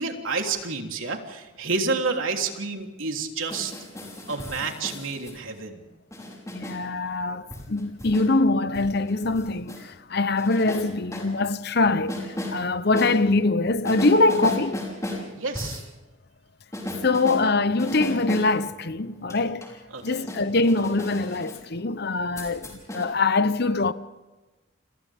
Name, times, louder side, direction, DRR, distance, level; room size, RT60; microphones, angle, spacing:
voice 1, 0.0-3.7 4.3-5.8 15.3-15.8 19.9-20.3, right 4 dB, 80° right, 3.4 m, -29 dB
sound 1, 3.4-5.3 6.1-6.8 7.5-8.3 8.7-9.8 10.4-11.3 12.1-12.6 12.9-13.1 13.8-15.3 15.5-15.9 16.7-17.4 17.8-18.5 19.0-21.6 22.4-23.1, left 1 dB, 15° left, 5.4 m, -34 dB
voice 2, 6.5-14.8 17.0-19.7 20.0-23.9, left 3 dB, 50° left, 0.9 m, -23 dB
30.0 x 28.0 x 3.6 m
head